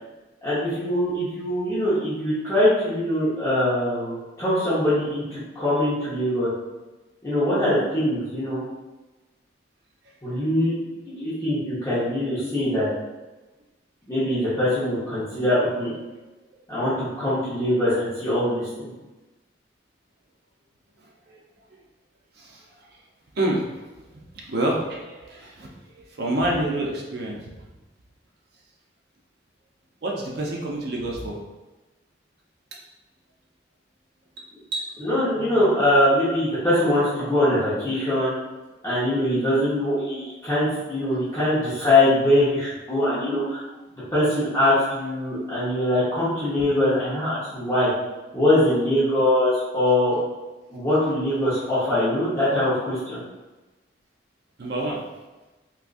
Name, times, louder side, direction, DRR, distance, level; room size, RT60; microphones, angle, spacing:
voice 1, 0.4-6.5 7.2-8.6 10.2-10.8 11.1-12.9 14.1-15.9 16.7-18.9 35.0-38.3 38.8-43.6 44.1-47.9 48.3-50.2 50.7-53.2, left 1 dB, 15° left, -12 dB, 1.0 m, -22 dB
voice 2, 23.4-23.8 24.5-27.4 30.0-31.4 34.7-34.9 35.4-35.5 40.2-40.3 41.1-41.3 54.6-55.0, right 1 dB, 55° right, -1 dB, 0.6 m, -28 dB
3.7 x 2.7 x 2.5 m, 1.1 s
head